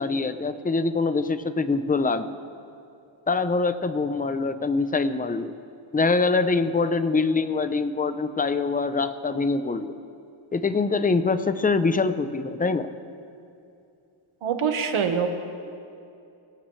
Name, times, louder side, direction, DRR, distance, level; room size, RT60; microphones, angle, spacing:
voice 1, 0.0-2.3 3.3-5.5 5.9-9.9 10.5-12.9, left 4 dB, 20° left, 11 dB, 0.6 m, -24 dB
voice 2, 14.4-15.3, right 7 dB, 80° right, 5 dB, 1.5 m, -24 dB
25.5 x 15.5 x 3.2 m, 2.6 s
wide cardioid pair, 140°, 48 cm